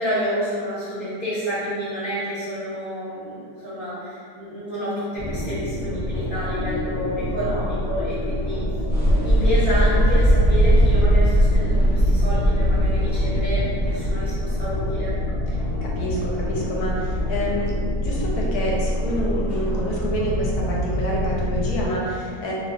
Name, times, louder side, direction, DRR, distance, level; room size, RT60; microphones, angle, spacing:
voice 1, 0.0-8.6 9.2-15.1, equal, 40° right, -13 dB, 0.5 m, -29 dB
sound 1, 5.2-21.9, left 1 dB, 55° left, 0.6 m, -26 dB
sound 2, 8.9-15.5, equal, 25° left, 1.2 m, -19 dB
voice 2, 15.8-22.5, equal, 75° left, -3 dB, 1.0 m, -28 dB
2.6 x 2.3 x 3.5 m, 2.1 s
omnidirectional pair, 1.8 m